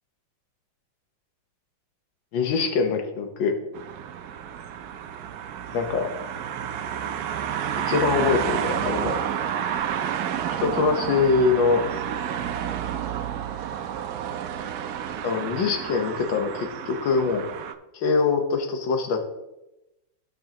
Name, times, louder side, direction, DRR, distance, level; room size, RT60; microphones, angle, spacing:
voice 1, 2.3-3.6 5.7-6.1 7.9-9.2 10.6-11.9 15.2-17.5 17.9-19.2, left 5 dB, 75° left, 4 dB, 1.8 m, -23 dB
sound 1, 3.7-17.7, right 9 dB, 70° right, 0.9 m, -30 dB
15.0 x 5.5 x 2.9 m, 0.94 s
omnidirectional pair, 2.2 m